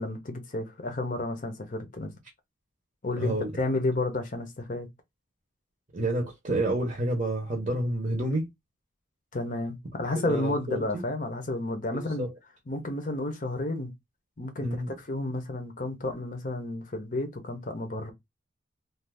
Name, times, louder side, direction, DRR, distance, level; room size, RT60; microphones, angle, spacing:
voice 1, 0.0-2.1 3.0-4.9 9.3-12.3 12.7-13.9 14.4-18.1, left 2 dB, 40° left, 0.7 m, -31 dB
voice 2, 3.2-3.5 5.9-8.5 10.2-11.0 11.9-12.3 14.6-14.9, right 1 dB, 35° right, 0.7 m, -29 dB
2.6 x 2.4 x 3.4 m
head